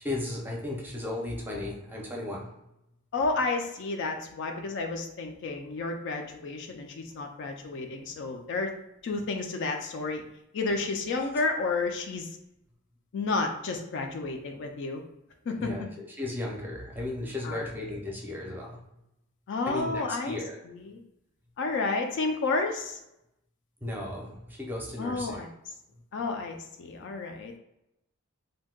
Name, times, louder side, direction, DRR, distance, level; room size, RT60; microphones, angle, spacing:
voice 1, 0.0-2.7 11.1-11.2 15.6-19.0 19.7-20.6 23.8-25.5 25.9-26.0, left 1 dB, 10° right, -2 dB, 0.6 m, -35 dB
voice 2, 3.1-8.7 9.0-10.2 10.5-12.3 13.1-15.0 15.5-15.7 17.4-17.7 19.5-20.4 20.9-21.0 21.6-23.0 25.0-25.5 26.1-27.5, left 3 dB, 55° left, 4 dB, 0.4 m, -31 dB
2.6 x 2.2 x 3.6 m, 0.85 s
head